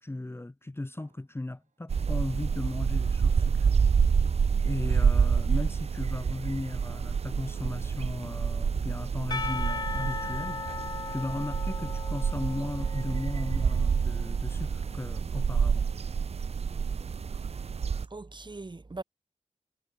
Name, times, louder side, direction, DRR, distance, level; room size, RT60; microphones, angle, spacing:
voice 1, 0.0-3.7 4.6-10.6 11.1-15.8, left 2 dB, 20° left, 1.0 m, -36 dB
Snare drum, 1.0-1.8 2.1-2.8 3.2-4.9 5.3-7.0 7.5-9.1 9.4-9.7, right 5 dB, 85° right, 4.8 m, -63 dB
sound 1, 1.9-18.0, right 6 dB, 60° right, 0.5 m, -28 dB
Percussion / Church bell, 9.3-14.1, left 4 dB, 35° left, 0.4 m, -37 dB
voice 2, 18.1-19.0, right 3 dB, 40° right, 2.5 m, -41 dB
wide cardioid pair, 70°, 12 cm